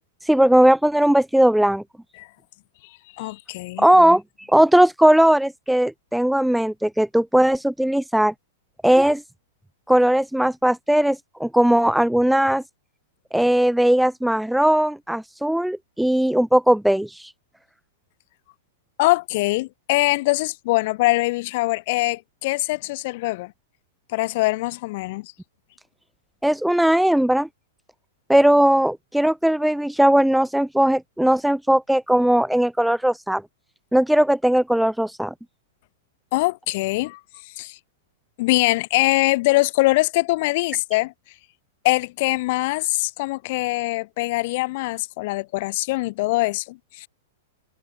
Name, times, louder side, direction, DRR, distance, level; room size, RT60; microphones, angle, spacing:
voice 1, 0.2-1.8 3.8-4.2 4.5-8.3 8.8-9.2 9.9-12.6 13.3-17.3 26.4-27.5 28.3-33.4 33.9-35.3, right 1 dB, ahead, 0.5 m, -18 dB
voice 2, 3.1-3.8 19.0-23.5 24.1-25.3 36.3-37.2 37.6-37.8 38.4-41.1 41.8-47.1, left 21 dB, 50° left, 7.2 m, -23 dB
figure-of-eight pair, 100°, 0 cm